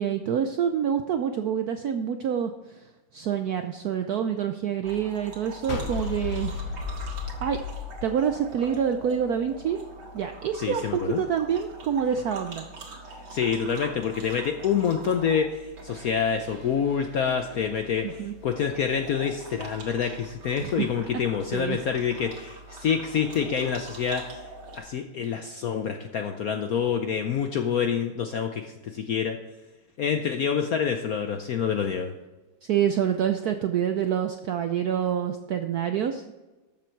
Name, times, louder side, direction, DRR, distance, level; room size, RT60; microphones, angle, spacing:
voice 1, 0.0-2.5 3.1-6.5 7.4-7.6 8.0-9.8 10.1-12.7 18.0-18.3 20.6-20.9 21.5-21.8 32.6-36.3, right 8 dB, 75° right, 7 dB, 0.8 m, -27 dB
sound 1, 4.8-24.8, right 2 dB, 55° right, 2.3 m, -44 dB
sound 2, 5.7-8.9, left 4 dB, 45° left, 1.5 m, -33 dB
voice 2, 10.6-11.2 13.3-24.4 24.7-29.4 30.0-32.1, left 7 dB, 70° left, 6 dB, 0.8 m, -27 dB
13.0 x 7.5 x 4.5 m, 1.1 s
omnidirectional pair, 2.3 m